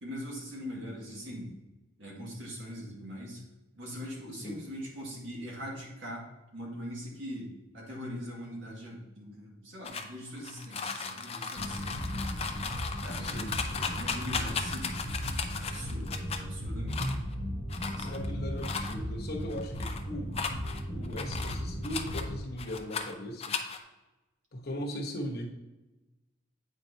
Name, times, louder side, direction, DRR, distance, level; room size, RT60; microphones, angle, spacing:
voice 1, 0.0-1.5 2.0-3.4 3.8-6.3 6.5-12.2 13.0-15.0 15.6-17.2 18.0-18.3, equal, 70° right, -3 dB, 1.9 m, -42 dB
sound 1, 9.8-16.4 16.9-17.3 17.7-18.3 18.6-18.9 19.4-20.0 20.3-22.2 22.6-23.1 23.4-23.8, left 5 dB, 30° left, 0.5 m, -36 dB
sound 2, 11.6-22.4, equal, 25° right, 0.9 m, -36 dB
voice 2, 13.2-13.5 18.0-20.5 20.9-23.5 24.5-25.5, equal, 55° left, 0 dB, 1.1 m, -38 dB
8.3 x 4.5 x 2.7 m, 1.1 s
head